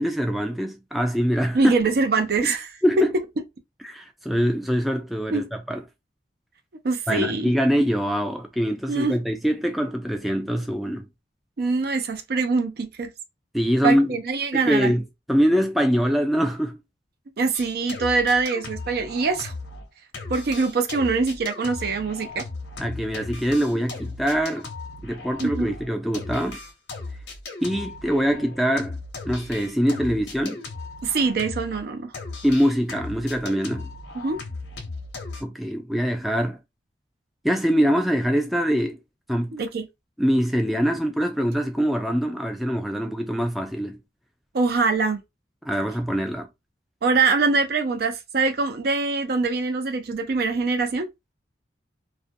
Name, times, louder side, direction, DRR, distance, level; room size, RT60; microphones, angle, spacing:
voice 1, 0.0-1.7 2.4-2.5 2.8-3.1 3.8-5.8 7.1-11.0 13.5-14.2 14.5-15.0 15.3-16.8 22.8-24.7 25.0-26.6 27.6-29.0 29.3-30.6 32.4-33.9 35.4-36.6 37.4-39.0 39.3-39.6 40.2-44.0 45.7-46.5, equal, ahead, 0.3 m, -23 dB
voice 2, 1.5-2.7 5.3-5.5 6.8-7.5 8.9-9.1 11.6-13.1 13.8-14.9 17.4-19.5 20.3-22.4 25.4-25.7 31.0-32.1 34.1-34.4 39.5-39.9 44.5-45.2 47.0-51.1, right 4 dB, 60° right, 0.5 m, -23 dB
sound 1, 17.5-19.9 20.1-31.8 32.1-35.4, left 3 dB, 75° left, 0.8 m, -37 dB
2.5 x 2.1 x 2.5 m
head